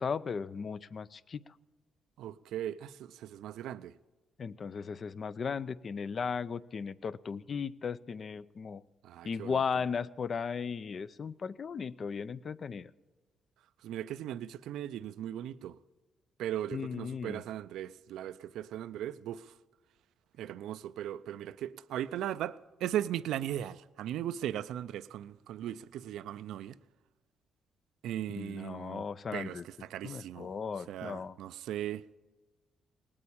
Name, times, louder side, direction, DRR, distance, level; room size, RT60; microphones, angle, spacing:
voice 1, 0.0-1.5 4.4-8.8 9.2-12.9 16.7-17.4 28.3-29.6 30.0-31.4, left 6 dB, 45° left, 0.5 m, -36 dB
voice 2, 2.2-4.0 9.0-9.6 13.8-15.8 16.4-19.6 20.4-26.8 28.0-29.1 29.3-30.5 30.9-32.1, right 11 dB, 85° right, 0.4 m, -38 dB
19.0 x 8.7 x 8.5 m
cardioid pair, 90°, 0 cm